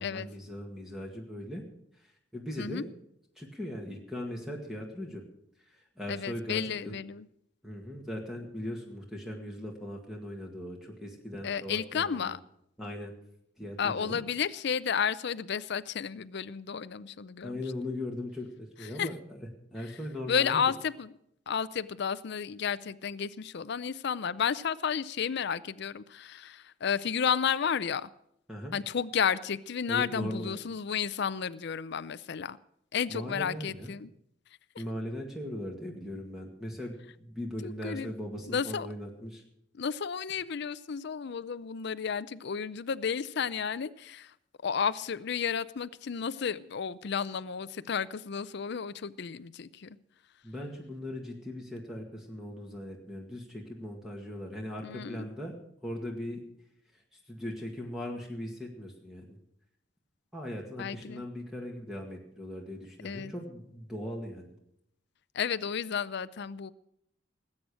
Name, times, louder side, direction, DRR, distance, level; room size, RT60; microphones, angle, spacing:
voice 1, 0.0-1.6 1.9-2.9 3.4-5.2 5.6-7.0 7.6-12.4 12.8-13.1 13.6-14.2 17.4-20.6 28.5-28.8 29.9-30.6 33.1-33.9 34.8-39.4 50.4-55.6 55.8-56.4 56.9-59.4 60.3-64.5, left 1 dB, ahead, 0 dB, 2.0 m, -39 dB
voice 2, 6.1-7.3 11.4-12.4 13.8-17.6 19.0-19.1 20.3-21.1 21.5-28.1 28.7-32.6 32.9-34.1 37.6-38.1 38.5-38.9 39.8-44.3 44.6-50.0 54.8-55.3 60.8-61.2 63.0-63.3 65.3-66.7, left 7 dB, 60° left, 15 dB, 0.5 m, -32 dB
19.5 x 8.6 x 6.3 m, 0.75 s
head